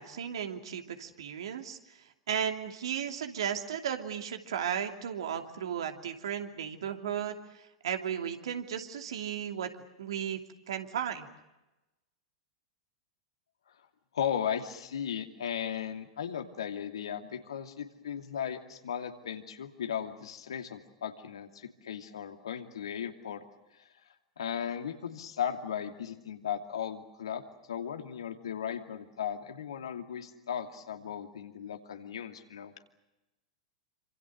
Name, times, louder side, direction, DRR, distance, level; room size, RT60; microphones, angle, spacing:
voice 1, 0.0-1.8 2.3-9.7 10.0-10.4 10.7-11.3, right 8 dB, 65° right, 5 dB, 2.8 m, -35 dB
voice 2, 14.1-23.4 23.8-23.9 24.4-27.4 27.7-32.7, left 8 dB, 70° left, 5 dB, 2.7 m, -36 dB
28.0 x 26.5 x 6.5 m, 1.0 s
figure-of-eight pair, 95°, 3 cm